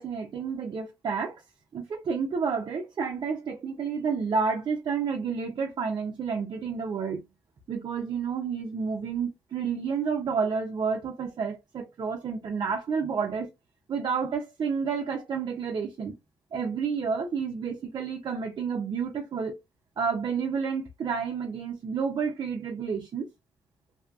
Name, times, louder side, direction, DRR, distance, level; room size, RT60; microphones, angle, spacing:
voice 1, 0.0-1.3 1.7-7.2 7.7-13.5 13.9-16.1 16.5-19.5 20.0-23.3, right 5 dB, 60° right, 0.6 m, -30 dB
2.7 x 2.2 x 2.5 m
supercardioid pair, 45°, 8 cm